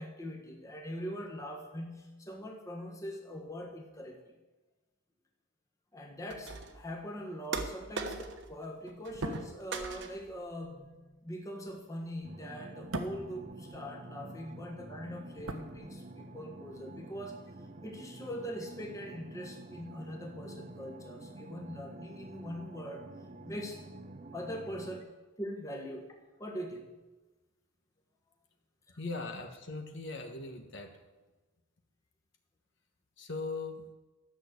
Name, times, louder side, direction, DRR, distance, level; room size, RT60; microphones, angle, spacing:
voice 1, 0.0-4.2 5.9-17.4 17.8-23.0 23.4-23.8 24.3-25.1 25.4-26.1 26.4-26.9 28.9-29.0, equal, 15° left, 1 dB, 1.4 m, -42 dB
sound 1, 6.3-6.9 7.5-8.6 8.9-9.4 9.7-10.4, right 4 dB, 55° right, 1.2 m, -40 dB
sound 2, 9.0-14.3 14.6-16.4 16.7-16.9, right 1 dB, 80° right, 1.3 m, -43 dB
sound 3, 12.2-25.0, right 1 dB, 35° right, 0.6 m, -48 dB
voice 2, 29.0-30.9 33.2-33.8, left 3 dB, 55° left, 4 dB, 1.4 m, -39 dB
13.0 x 6.5 x 8.3 m, 1.2 s
head